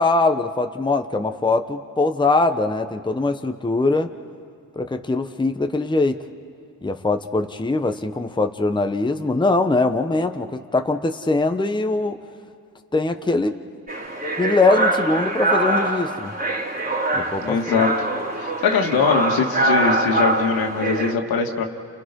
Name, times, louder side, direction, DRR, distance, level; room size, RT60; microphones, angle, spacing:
voice 1, 0.0-4.1 4.8-6.2 6.8-12.2 12.9-13.6 14.4-16.3 17.1-17.8, left 3 dB, 10° left, 6 dB, 1.1 m, -22 dB
sound 1, 13.9-21.1, right 2 dB, 25° right, 3.6 m, -23 dB
voice 2, 17.4-17.9 18.4-21.6, left 5 dB, 75° left, 2 dB, 2.5 m, -22 dB
29.5 x 29.5 x 5.5 m, 2.3 s
cardioid pair, 70°, 37 cm